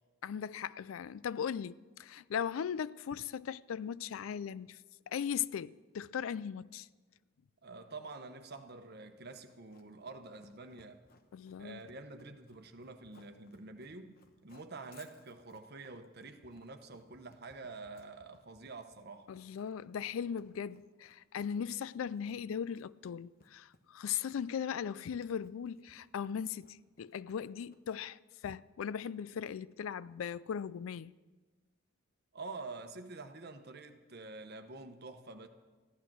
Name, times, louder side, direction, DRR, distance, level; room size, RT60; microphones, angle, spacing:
voice 1, 0.2-4.8 5.1-6.9 11.3-11.8 19.3-31.1, left 8 dB, 85° left, 0.4 m, -38 dB
voice 2, 7.6-11.1 11.6-14.2 14.4-19.3 32.3-35.5, right 3 dB, 55° right, 1.0 m, -47 dB
Run, 9.4-28.0, left 3 dB, 50° left, 1.0 m, -66 dB
14.5 x 11.0 x 6.2 m
head